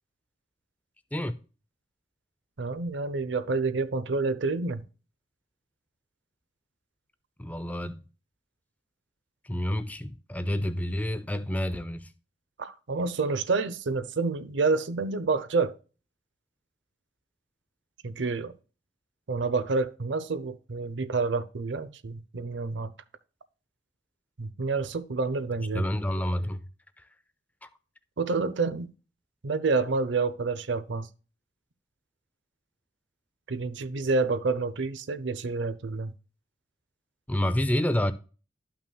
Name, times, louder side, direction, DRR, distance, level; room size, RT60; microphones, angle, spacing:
voice 1, 2.6-4.8 12.6-15.7 18.0-18.5 19.3-22.9 24.4-25.9 28.2-28.9 29.4-31.1 33.5-36.1, right 4 dB, 80° right, 0.6 m, -28 dB
voice 2, 7.4-8.0 9.4-12.1 25.7-26.7 27.6-27.7 37.3-38.1, left 1 dB, 10° left, 0.4 m, -29 dB
12.5 x 5.7 x 2.2 m
head